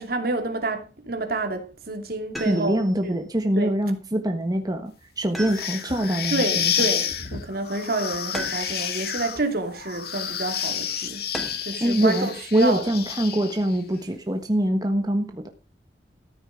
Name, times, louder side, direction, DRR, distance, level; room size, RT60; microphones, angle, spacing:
voice 1, 0.0-3.1 3.6-3.7 6.3-11.3 11.6-12.8, right 2 dB, 60° right, 2.6 m, -28 dB
sound 1, 2.3-3.0 5.3-6.1 8.3-9.0 11.3-11.9 13.5-14.2, equal, ahead, 3.1 m, -37 dB
voice 2, 2.4-6.7 11.8-15.5, right 1 dB, 20° right, 1.4 m, -24 dB
sound 2, 5.5-13.8, left 8 dB, 60° left, 2.1 m, -30 dB
14.0 x 9.1 x 5.0 m
head